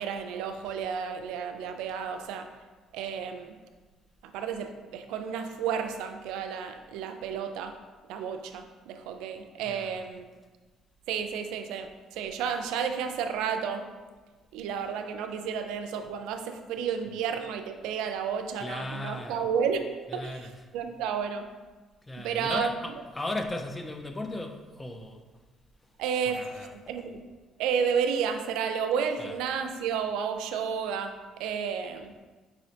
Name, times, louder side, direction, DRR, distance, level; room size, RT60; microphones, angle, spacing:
voice 1, 0.0-2.5 2.9-3.6 4.3-7.8 8.1-10.2 11.1-13.9 14.5-21.5 22.2-22.7 26.0-27.2 27.6-32.1, right 7 dB, 90° right, 7 dB, 0.3 m, -32 dB
voice 2, 9.6-10.0 18.6-19.5 20.1-20.7 22.0-25.2 26.1-27.1 29.2-29.4, left 1 dB, 15° left, 5 dB, 0.4 m, -37 dB
4.8 x 3.1 x 2.7 m, 1.3 s
cardioid pair, 110°, 0 cm